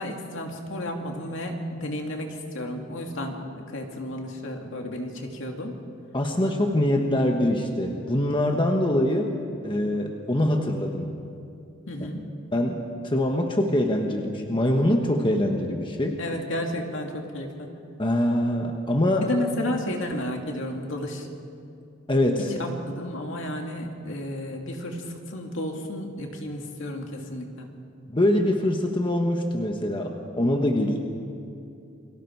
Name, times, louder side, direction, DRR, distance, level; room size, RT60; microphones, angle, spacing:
voice 1, 0.0-5.7 11.9-12.2 16.2-17.7 19.1-21.3 22.6-27.7, left 1 dB, 65° left, 2 dB, 2.6 m, -32 dB
voice 2, 6.1-9.3 9.6-11.1 12.5-16.2 18.0-19.3 22.1-22.5 28.1-31.0, left 1 dB, 25° left, 2 dB, 1.4 m, -24 dB
29.0 x 23.5 x 4.7 m, 2.6 s
head